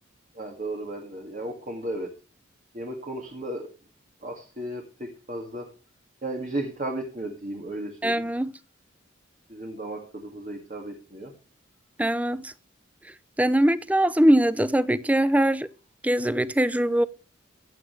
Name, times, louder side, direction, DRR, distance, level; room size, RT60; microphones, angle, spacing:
voice 1, 0.3-2.1 2.7-3.7 4.2-5.7 6.2-8.2 9.5-11.3, right 1 dB, 40° right, 2.1 m, -34 dB
voice 2, 8.0-8.5 12.0-12.5 13.4-15.7 16.0-17.1, right 1 dB, 5° right, 0.6 m, -22 dB
15.5 x 8.9 x 3.3 m
head